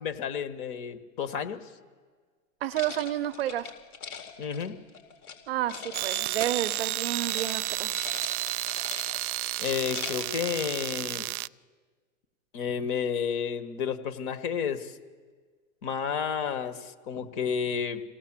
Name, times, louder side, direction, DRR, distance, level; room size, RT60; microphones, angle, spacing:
voice 1, 0.0-1.6 4.4-4.8 9.6-11.3 12.5-14.9 15.8-18.0, left 7 dB, 35° left, 9 dB, 1.4 m, -31 dB
voice 2, 2.6-3.7 5.5-8.1, right 12 dB, 45° right, 9 dB, 0.7 m, -31 dB
sound 1, 2.7-5.4 5.7-6.9 7.2-7.5 7.8-9.3 9.7-10.4, left 6 dB, 85° left, 4.1 m, -41 dB
sound 2, 5.9-11.5, right 15 dB, 80° right, 0.6 m, -31 dB
26.5 x 17.5 x 7.4 m, 1.5 s
supercardioid pair, 165°, 43 cm